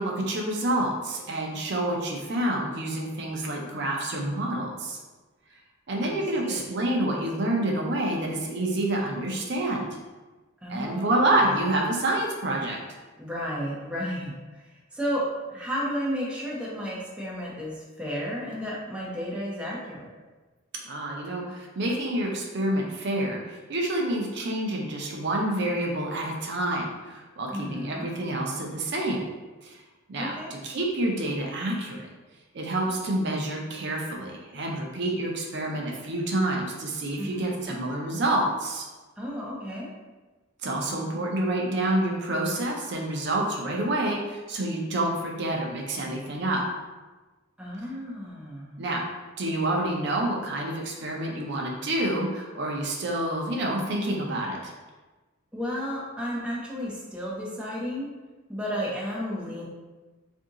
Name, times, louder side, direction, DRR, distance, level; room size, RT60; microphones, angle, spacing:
voice 1, 0.0-5.0 5.9-10.0 10.7-12.8 20.8-29.3 29.6-29.8 30.1-32.1 32.5-38.9 40.6-46.6 48.8-49.0 49.4-54.7, right 1 dB, 55° right, 0 dB, 0.5 m, -28 dB
voice 2, 6.0-6.6 10.6-11.2 13.2-15.2 15.5-20.1 27.5-28.1 30.2-30.5 37.2-37.8 39.2-39.9 47.6-48.8 55.5-58.1 58.5-59.7, equal, 5° right, -6 dB, 0.5 m, -33 dB
2.7 x 2.6 x 3.7 m, 1.2 s
head